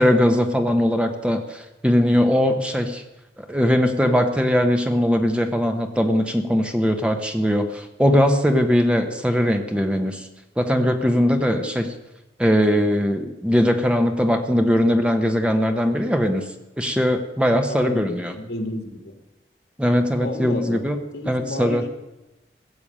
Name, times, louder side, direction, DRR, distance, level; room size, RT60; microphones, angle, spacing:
voice 1, 0.0-3.0 3.4-10.3 10.6-11.9 12.4-16.4 16.8-18.3 19.8-21.0 21.3-21.8, equal, 5° right, 5 dB, 1.0 m, -20 dB
voice 2, 17.7-19.2 20.2-20.9 21.1-21.9, left 1 dB, 80° left, 5 dB, 2.1 m, -31 dB
16.0 x 7.1 x 8.7 m, 0.97 s
head